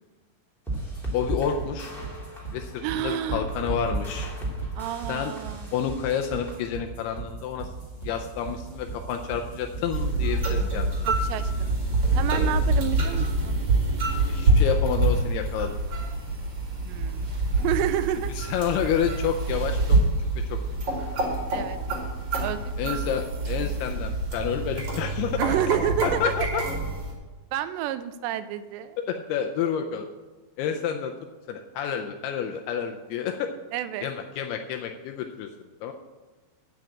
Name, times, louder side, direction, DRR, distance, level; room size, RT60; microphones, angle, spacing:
sound 1, 0.7-14.3, right 4 dB, 15° left, 1.2 m, -37 dB
sound 2, 0.7-6.6, right 1 dB, ahead, 1.8 m, -35 dB
voice 1, 1.1-1.9 2.5-4.3 5.1-5.3 5.7-7.7 8.0-10.9 14.3-15.8 18.4-20.0 20.5-20.6 22.8-25.4 26.0-26.6 29.1-30.1 30.6-31.1 31.5-33.5 34.0-35.5 35.8-35.9, left 8 dB, 80° left, 4 dB, 2.4 m, -29 dB
voice 2, 2.8-3.5 4.8-5.7 11.0-11.8 12.2-13.6 16.8-18.3 21.5-21.8 22.4-23.0 25.4-26.3 27.5-29.0 33.7-34.1, right 12 dB, 85° right, 12 dB, 2.7 m, -30 dB
sound 3, 9.9-27.1, right 2 dB, 40° right, 1.8 m, -26 dB
8.9 x 6.3 x 8.5 m, 1.3 s
omnidirectional pair, 5.1 m